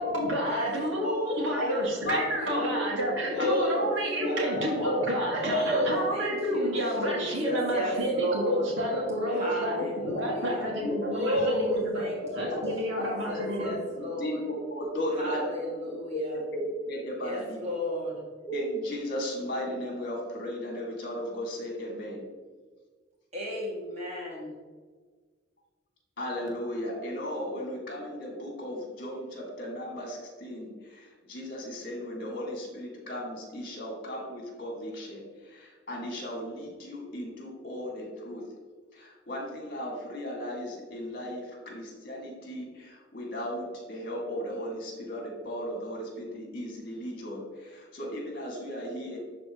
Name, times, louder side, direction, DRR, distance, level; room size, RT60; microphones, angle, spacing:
voice 1, 0.0-13.7, equal, 75° right, -2 dB, 2.2 m, -30 dB
voice 2, 1.0-2.1 2.5-2.7 3.3-3.9 4.2-4.9 5.3-6.7 7.0-8.6 9.3-10.7 11.1-12.5 13.0-14.4 15.2-16.4 17.2-18.2 23.3-24.5, equal, 35° right, -4 dB, 2.3 m, -33 dB
voice 3, 2.0-3.1 3.5-4.9 6.3-7.1 7.5-8.0 9.2-9.6 10.1-10.2 10.6-10.9 11.7-11.8 13.9-17.6 18.4-22.3 26.2-38.4 38.9-49.2, equal, 45° left, -1 dB, 2.3 m, -36 dB
12.0 x 4.2 x 3.1 m, 1.5 s
head